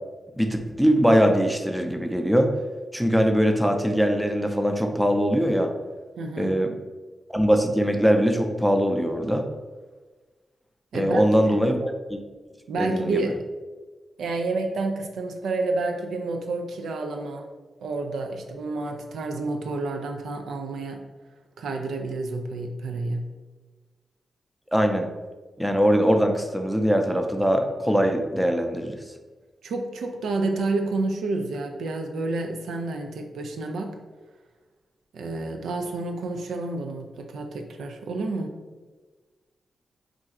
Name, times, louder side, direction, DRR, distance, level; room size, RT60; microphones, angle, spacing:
voice 1, 0.4-2.5 2.9-5.7 6.4-6.7 7.3-9.5 10.9-12.2 12.8-13.2 24.7-25.1 25.6-29.0, equal, ahead, 4 dB, 0.4 m, -22 dB
voice 2, 6.2-6.5 10.9-11.2 12.7-13.4 14.2-17.5 17.8-21.0 21.6-23.2 29.6-34.0 35.1-38.6, right 3 dB, 85° right, 4 dB, 0.3 m, -29 dB
2.4 x 2.3 x 4.0 m, 1.3 s
supercardioid pair, 50°, 0 cm